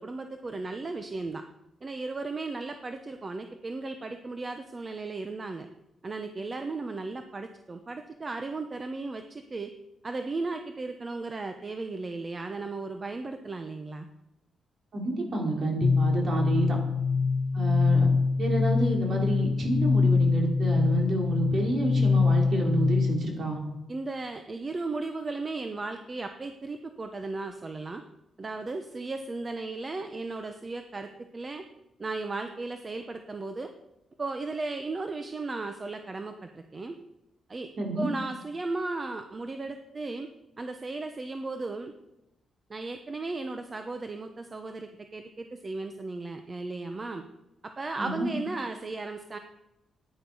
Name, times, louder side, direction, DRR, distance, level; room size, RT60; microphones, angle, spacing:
voice 1, 0.0-1.4 1.8-5.7 6.0-9.7 10.0-14.1 23.9-28.0 28.4-31.6 32.0-33.7 34.2-37.0 37.5-37.7 38.0-40.3 40.6-41.9 42.7-47.2 47.6-49.4, right 3 dB, 30° right, 7 dB, 0.9 m, -35 dB
voice 2, 14.9-16.8 17.5-18.1 18.4-23.6 37.8-38.1 48.0-48.3, right 2 dB, 50° right, 0 dB, 3.9 m, -29 dB
sound 1, 15.8-23.4, left 4 dB, 45° left, 1.3 m, -24 dB
14.5 x 10.0 x 5.5 m, 0.92 s
cardioid pair, 115°, 0 cm